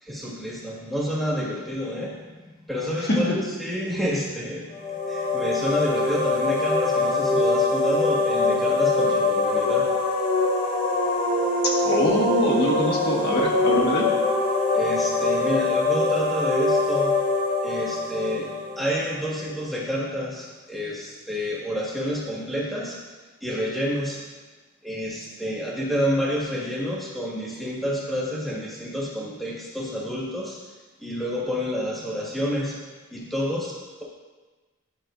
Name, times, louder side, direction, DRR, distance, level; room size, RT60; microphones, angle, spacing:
voice 1, 0.0-4.8 5.1-10.0 14.7-17.2 17.6-23.0 23.4-24.2 24.8-30.7 31.0-32.8 33.1-34.0, equal, ahead, -6 dB, 1.7 m, -29 dB
voice 2, 3.1-3.4 11.8-14.1, left 1 dB, 50° left, -3 dB, 1.6 m, -23 dB
sound 1, 4.7-19.4, left 3 dB, 80° left, 2.3 m, -23 dB
11.0 x 6.1 x 2.6 m, 1.3 s
head